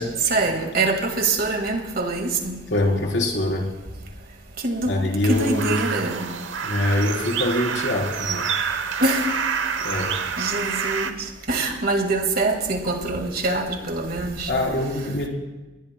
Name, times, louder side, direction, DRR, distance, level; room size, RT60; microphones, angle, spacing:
voice 1, 0.3-2.6 4.6-5.0 5.2-6.3 9.0-9.3 10.4-11.1 11.5-14.5, right 2 dB, 55° right, 1.9 m, -24 dB
voice 2, 2.7-3.7 4.9-5.8 6.6-8.5 9.8-10.2 14.5-15.3, left 1 dB, 70° left, 4.0 m, -24 dB
sound 1, 5.3-11.1, right 6 dB, 85° right, 1.0 m, -27 dB
28.5 x 20.5 x 2.2 m
head